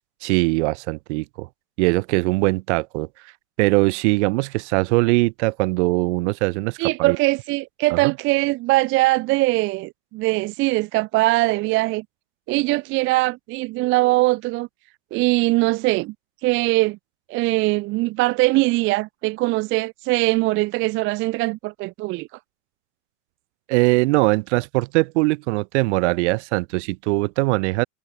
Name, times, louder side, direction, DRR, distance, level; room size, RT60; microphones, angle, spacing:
voice 1, 0.2-1.5 1.8-3.1 3.6-7.2 7.9-8.1 23.7-27.8, right 24 dB, 45° right, 1.7 m, -21 dB
voice 2, 6.8-12.0 12.5-14.7 15.1-16.1 16.4-17.0 17.3-22.3, right 21 dB, 25° right, 0.9 m, -21 dB
supercardioid pair, 155°, 47 cm